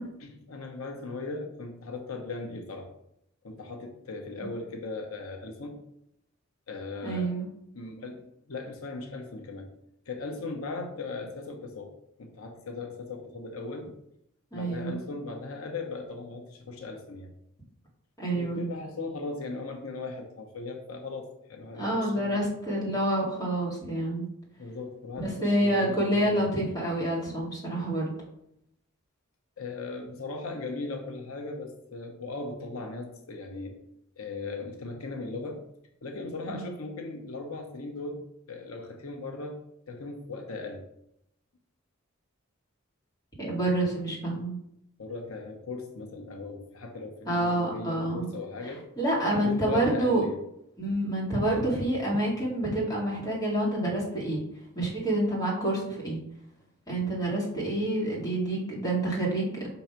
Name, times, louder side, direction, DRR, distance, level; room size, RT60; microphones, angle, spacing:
voice 1, 0.2-2.9 3.4-5.8 6.7-7.3 7.7-9.7 10.1-11.9 12.2-13.9 14.5-17.3 18.4-22.4 24.6-26.5 29.6-33.8 34.2-35.6 36.0-39.6 39.9-40.9 45.0-48.8 49.3-50.4, left 3 dB, 90° left, 3 dB, 1.0 m, -38 dB
voice 2, 7.0-7.5 14.5-15.0 18.2-18.6 21.7-24.3 25.2-28.1 36.5-36.6 43.4-44.6 47.3-48.3 49.0-50.2 50.8-54.4 54.8-56.2 56.9-59.6, right 1 dB, 20° left, -4 dB, 2.3 m, -28 dB
5.7 x 3.9 x 5.8 m, 0.77 s
head